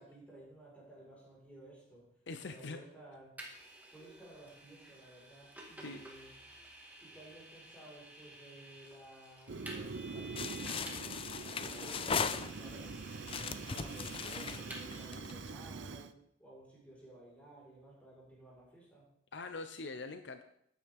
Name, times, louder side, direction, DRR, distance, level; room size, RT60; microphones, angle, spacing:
voice 1, 0.0-2.1 2.4-3.5 3.9-6.3 7.0-13.0 13.2-19.0, right 1 dB, 5° left, -5 dB, 4.7 m, -55 dB
voice 2, 2.3-2.8 5.8-6.0 19.3-20.4, left 3 dB, 70° left, 8 dB, 0.7 m, -43 dB
Vehicle, 3.4-15.0, right 1 dB, 10° right, 1.9 m, -52 dB
Fire, 9.5-16.1, right 4 dB, 75° right, 0.6 m, -44 dB
sound 1, 10.4-12.8 13.2-15.5, left 6 dB, 30° left, 0.4 m, -38 dB
13.0 x 9.6 x 3.6 m, 0.72 s
head